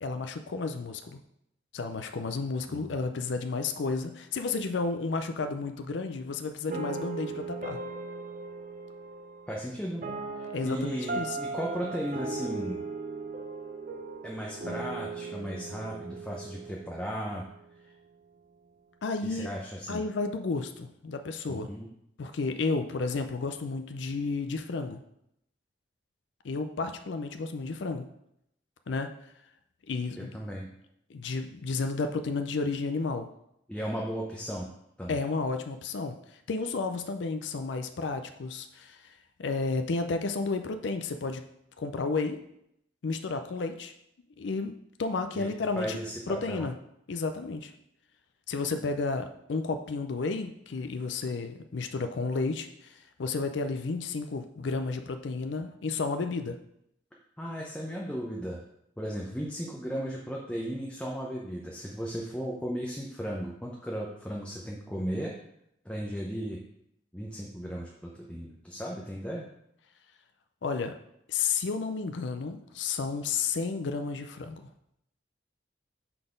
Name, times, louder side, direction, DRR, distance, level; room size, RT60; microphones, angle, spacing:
voice 1, 0.0-1.2 1.7-7.8 10.5-11.4 19.0-19.5 19.9-21.7 22.2-25.0 26.4-28.1 28.9-29.1 29.9-30.3 31.1-33.3 35.1-36.2 36.5-41.4 41.8-42.4 43.0-43.9 44.4-44.7 45.0-46.0 46.3-46.7 47.1-47.7 48.5-56.6 70.6-71.0 71.3-74.6, left 4 dB, 70° left, 7 dB, 0.4 m, -32 dB
sound 1, 6.7-17.8, right 3 dB, 45° right, 0.6 m, -38 dB
voice 2, 9.5-10.0 10.4-12.8 14.2-17.4 17.8-17.9 19.2-20.0 21.5-21.9 30.2-30.7 33.7-34.7 35.0-35.3 45.3-45.5 45.8-46.7 57.4-58.6 59.0-65.3 65.8-66.6 67.1-69.5, equal, 5° left, -3 dB, 0.6 m, -36 dB
5.8 x 4.0 x 5.1 m, 0.77 s
head